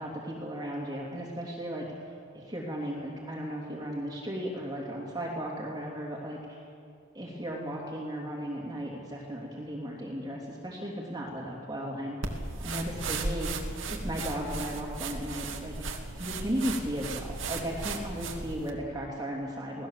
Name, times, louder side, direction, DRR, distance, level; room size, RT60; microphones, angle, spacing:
voice 1, 0.0-6.6 7.1-13.5 14.0-15.7 16.2-19.9, equal, 20° right, -3 dB, 2.9 m, -36 dB
sound 1, 12.2-18.7, right 3 dB, 75° right, 2.5 m, -36 dB
29.0 x 19.0 x 7.5 m, 2.4 s
head